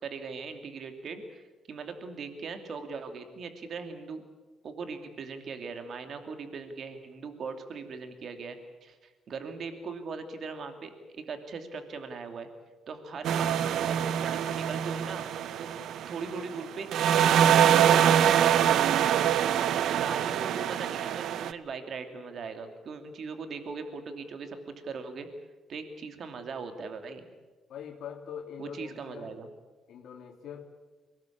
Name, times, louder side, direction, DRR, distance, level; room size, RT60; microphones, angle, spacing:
voice 1, 0.0-4.2 4.6-12.5 12.9-13.5 13.9-15.2 15.6-15.7 16.1-18.0 18.6-18.8 20.0-25.3 25.7-27.2 28.6-29.5, right 4 dB, 60° right, 7 dB, 2.7 m, -40 dB
sound 1, 13.2-16.6 16.9-21.5, right 9 dB, 75° right, 0.8 m, -24 dB
voice 2, 27.7-29.3 29.9-30.6, left 8 dB, 75° left, 2 dB, 3.0 m, -43 dB
23.0 x 18.5 x 8.6 m, 1.3 s
cardioid pair, 90°, 0 cm